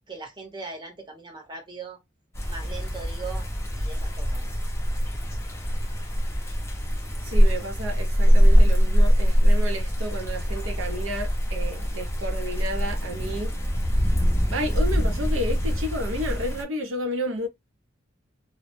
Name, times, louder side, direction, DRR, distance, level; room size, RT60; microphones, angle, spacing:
voice 1, 0.1-2.0 2.5-3.5 3.7-4.5, right 4 dB, 25° right, 0.7 m, -39 dB
sound 1, 2.3-16.6, equal, 15° left, 0.5 m, -23 dB
voice 2, 7.2-13.5 14.5-17.5, equal, 75° right, 0.5 m, -31 dB
2.0 x 2.0 x 3.0 m
head